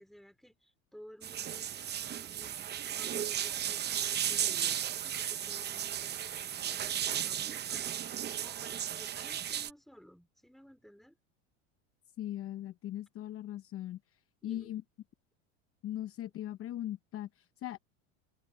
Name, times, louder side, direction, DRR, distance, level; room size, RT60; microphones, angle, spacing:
voice 1, 0.0-7.9 8.3-11.2 14.4-14.7, equal, ahead, 3.6 m, -56 dB
sound 1, 1.2-9.7, right 10 dB, 25° right, 0.8 m, -35 dB
voice 2, 12.2-14.0 14.4-14.8 15.8-17.8, left 12 dB, 35° left, 0.9 m, -39 dB
supercardioid pair, 110°, 38 cm